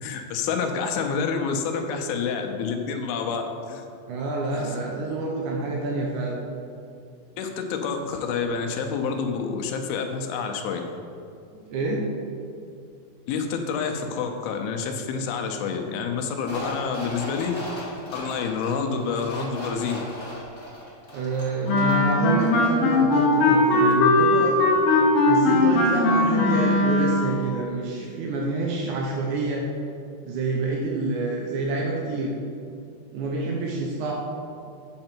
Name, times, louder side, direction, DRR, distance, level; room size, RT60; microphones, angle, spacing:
voice 1, 0.0-3.4 3.7-3.8 7.4-10.8 13.3-17.5 18.1-20.1, left 5 dB, 80° left, 4 dB, 2.5 m, -28 dB
voice 2, 4.1-6.4 11.7-12.1 21.1-24.6 25.3-29.7 30.2-32.3 33.1-34.1, right 3 dB, 75° right, -2 dB, 1.8 m, -27 dB
sound 1, 16.4-22.1 22.4-22.5, left 1 dB, 30° left, 0.4 m, -37 dB
Wind instrument woodwind instrument, 21.7-27.3, left 2 dB, 65° left, 1.6 m, -19 dB
7.6 x 7.5 x 4.4 m, 2.5 s
omnidirectional pair, 4.4 m